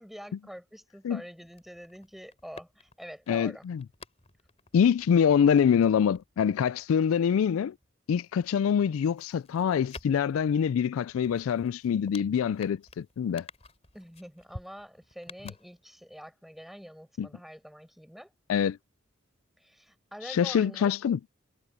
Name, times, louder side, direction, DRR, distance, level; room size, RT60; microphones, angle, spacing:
voice 1, 0.0-3.6 13.9-18.3 19.6-20.9, equal, ahead, 5.4 m, -46 dB
sound 1, 1.4-7.9 8.2-16.2 16.5-16.6, left 3 dB, 30° left, 4.3 m, -52 dB
voice 2, 3.3-3.8 4.7-7.7 8.1-13.5 17.2-17.3 18.5-18.8 20.2-21.2, left 7 dB, 85° left, 0.3 m, -25 dB
head